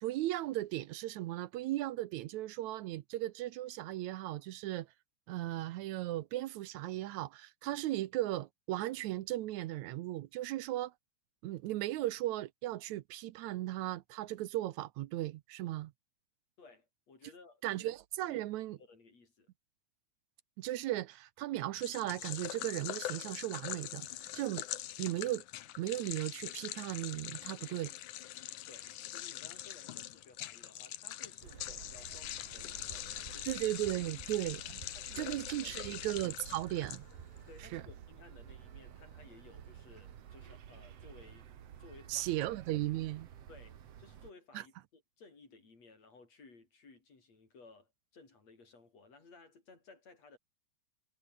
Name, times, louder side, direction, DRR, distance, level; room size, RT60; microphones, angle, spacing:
voice 1, 0.0-4.9 5.3-10.9 11.4-15.9 17.6-18.8 20.6-24.1 24.4-24.7 25.0-25.4 25.8-27.9 33.5-34.8 35.2-37.0 37.7-37.8 42.1-43.3 44.5-44.6, right 15 dB, 80° right, 2.1 m, -36 dB
voice 2, 16.6-17.8 18.2-18.4 18.8-19.5 28.7-33.7 34.6-36.0 36.5-36.6 37.5-41.5 41.8-42.5 43.5-50.4, left 4 dB, 60° left, 6.9 m, -58 dB
sound 1, 21.8-37.4, left 14 dB, 90° left, 2.6 m, -43 dB
sound 2, 31.4-44.3, right 9 dB, 60° right, 2.5 m, -52 dB
sound 3, 34.2-38.0, right 2 dB, 15° right, 3.8 m, -57 dB
omnidirectional pair, 3.4 m